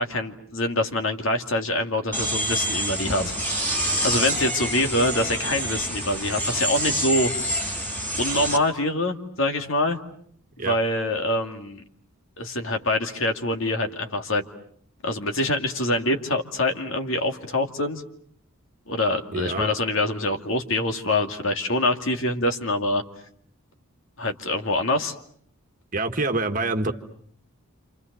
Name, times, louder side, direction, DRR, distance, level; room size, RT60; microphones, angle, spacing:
voice 1, 0.0-3.3 4.0-7.3 8.2-10.0 10.6-11.8 12.4-14.4 15.0-18.0 18.9-23.0 24.2-25.1 26.9-27.0, left 1 dB, 60° left, 5 dB, 2.6 m, -25 dB
sound 1, 2.1-8.6, equal, 10° left, 4.8 m, -27 dB
voice 2, 19.3-19.7 25.9-26.9, right 2 dB, 35° right, 7 dB, 1.7 m, -26 dB
28.5 x 28.5 x 6.9 m, 0.63 s
head